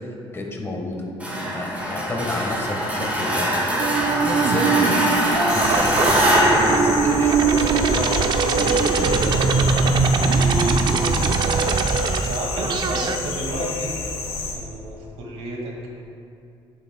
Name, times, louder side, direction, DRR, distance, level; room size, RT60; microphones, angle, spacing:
voice 1, 0.3-1.0 1.4-3.9 4.2-4.9 5.5-6.2 6.5-10.5, left 2 dB, 25° left, 0 dB, 1.3 m, -30 dB
sound 1, 1.2-7.9, equal, 15° right, 2.3 m, -23 dB
sound 2, 3.8-13.2, right 5 dB, 45° right, 0.6 m, -21 dB
sound 3, 5.5-14.5, left 4 dB, 85° left, 2.2 m, -31 dB
voice 2, 12.2-14.0 14.5-15.9, right 1 dB, 75° right, -1 dB, 1.9 m, -31 dB
17.0 x 8.0 x 2.2 m, 2.5 s
cardioid pair, 125°, 10 cm